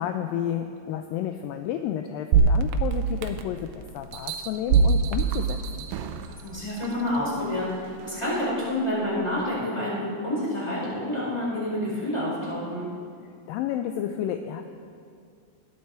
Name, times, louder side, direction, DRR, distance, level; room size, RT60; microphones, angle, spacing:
voice 1, 0.0-5.9 13.5-14.7, left 10 dB, 80° left, 7 dB, 2.1 m, -31 dB
sound 1, 2.3-3.6 4.1-6.3 6.8-6.9, right 5 dB, 75° right, 2.4 m, -22 dB
voice 2, 6.4-12.9, left 1 dB, 5° left, -6 dB, 4.3 m, -28 dB
19.0 x 13.0 x 4.5 m, 2.3 s
omnidirectional pair, 4.6 m